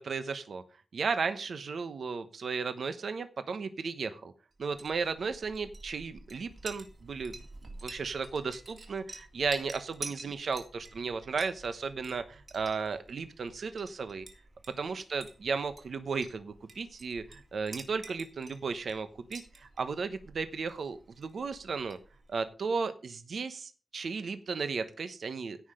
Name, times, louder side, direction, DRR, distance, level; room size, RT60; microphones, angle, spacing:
voice 1, 0.0-0.6 0.9-4.3 4.6-7.4 7.8-14.3 14.8-22.0 22.3-25.6, right 5 dB, 65° right, 10 dB, 1.0 m, -35 dB
Chink clink, 4.8-22.4, right 2 dB, 45° right, 3.2 m, -50 dB
16.5 x 5.8 x 5.0 m, 0.35 s
wide cardioid pair, 165°, 0 cm